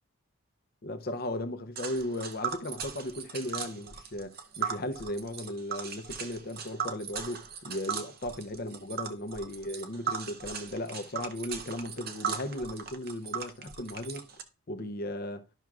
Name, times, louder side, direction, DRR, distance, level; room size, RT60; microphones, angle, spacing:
voice 1, 0.8-14.3 14.7-15.5, left 1 dB, 45° left, 0.6 m, -36 dB
Tick, 1.7-14.4, right 6 dB, 45° right, 0.7 m, -38 dB
11.5 x 6.0 x 2.4 m
head